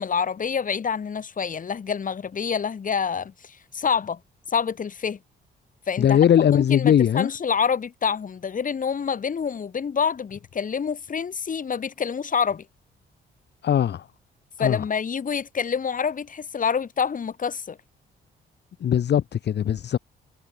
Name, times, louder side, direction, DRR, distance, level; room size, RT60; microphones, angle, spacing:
voice 1, 0.0-4.2 4.5-5.2 5.9-6.2 6.5-12.6 14.6-17.8, left 6 dB, 40° left, 3.1 m, -27 dB
voice 2, 6.0-7.3 13.6-14.1 14.6-14.8 18.8-20.0, left 9 dB, 60° left, 1.8 m, -20 dB
cardioid pair, 90°, 20 cm